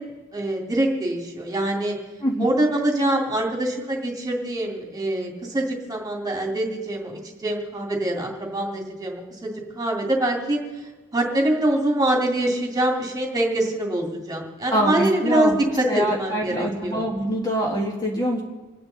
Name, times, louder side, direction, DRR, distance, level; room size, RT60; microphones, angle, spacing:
voice 1, 0.0-2.0 2.4-10.6 11.1-15.5 15.8-17.1, right 1 dB, 20° right, 0 dB, 2.5 m, -24 dB
voice 2, 2.2-2.5 14.7-15.5 15.9-18.4, equal, 20° left, -1 dB, 1.6 m, -24 dB
28.0 x 9.4 x 4.0 m, 1.3 s
head